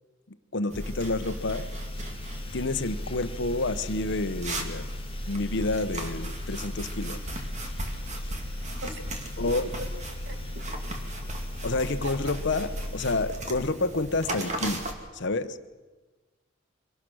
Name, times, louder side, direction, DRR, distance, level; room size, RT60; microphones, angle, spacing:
voice 1, 0.5-1.7 2.5-4.8 5.3-7.2 9.4-9.7 11.6-14.8 15.1-15.6, left 2 dB, 60° left, 12 dB, 1.0 m, -29 dB
sound 1, 0.7-14.1, left 1 dB, 25° left, 1.0 m, -37 dB
sound 2, 0.7-14.9, right 1 dB, 35° right, 2.4 m, -38 dB
voice 2, 9.4-9.9 10.3-10.7 12.0-12.3, right 2 dB, 65° right, 6 dB, 2.2 m, -40 dB
24.5 x 18.5 x 6.3 m, 1.3 s
head